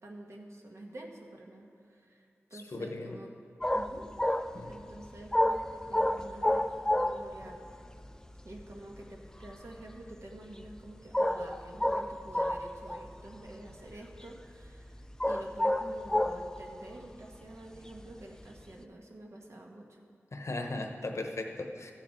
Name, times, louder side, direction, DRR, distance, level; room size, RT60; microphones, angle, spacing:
voice 1, 0.0-2.2 2.5-3.3 3.7-4.1 4.6-6.7 6.9-7.6 8.4-14.9 15.2-20.0, right 1 dB, 70° right, 0 dB, 1.3 m, -48 dB
voice 2, 2.5-3.2 4.5-4.7 20.3-21.9, left 2 dB, 65° left, 4 dB, 0.9 m, -37 dB
sound 1, 3.6-7.4 7.7-7.8 8.0-9.0 9.2-10.1 10.6-10.8 11.1-13.1 13.5-14.3 14.6-16.6 18.0-18.6, left 1 dB, 10° left, 0.4 m, -29 dB
14.5 x 6.3 x 4.5 m, 2.4 s
wide cardioid pair, 60°, 5 cm